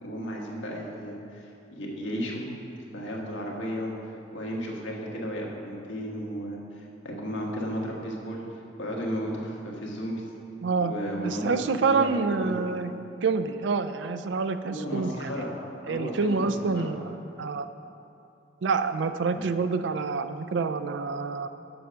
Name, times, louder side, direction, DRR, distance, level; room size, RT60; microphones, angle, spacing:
voice 1, 0.0-2.4 2.9-8.4 8.8-10.3 10.8-11.5 11.8-12.6 14.7-15.5 15.9-16.9 19.3-19.5, equal, 85° left, -2 dB, 1.4 m, -34 dB
voice 2, 10.6-10.9 11.2-12.9 13.2-15.3 15.9-17.1 17.4-17.7 18.6-21.5, right 4 dB, 70° right, 10 dB, 0.4 m, -27 dB
6.9 x 5.7 x 6.3 m, 2.7 s
head